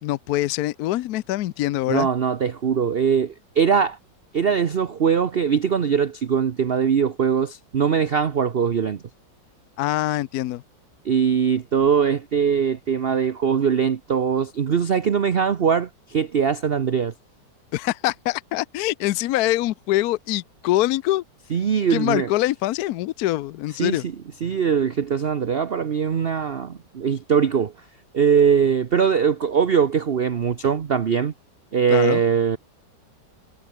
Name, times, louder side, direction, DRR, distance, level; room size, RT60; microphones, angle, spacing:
voice 1, 0.0-2.1 9.8-10.6 17.7-21.2 21.9-24.1 31.9-32.2, left 16 dB, 70° left, 1.0 m, -24 dB
voice 2, 1.9-4.0 4.3-9.0 11.0-17.1 21.5-22.3 23.8-24.0 24.4-27.7 28.1-31.3 31.7-32.6, right 7 dB, 45° right, 0.8 m, -21 dB
omnidirectional pair, 2.0 m